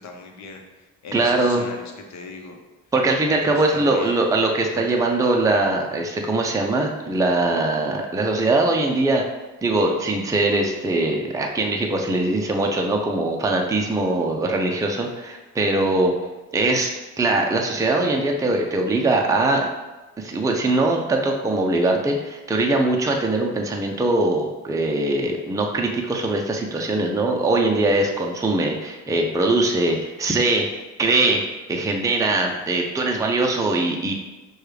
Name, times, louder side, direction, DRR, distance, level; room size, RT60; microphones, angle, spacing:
voice 1, 0.0-2.6 3.4-4.3 4.7-5.4, left 3 dB, 65° left, 3 dB, 0.8 m, -39 dB
voice 2, 1.1-1.6 2.9-9.2 9.6-16.1 16.5-19.7 20.2-30.7 31.0-31.4 31.7-34.1, right 2 dB, 10° right, 1 dB, 0.5 m, -21 dB
6.3 x 2.3 x 3.2 m, 1.1 s
cardioid pair, 90°, 30 cm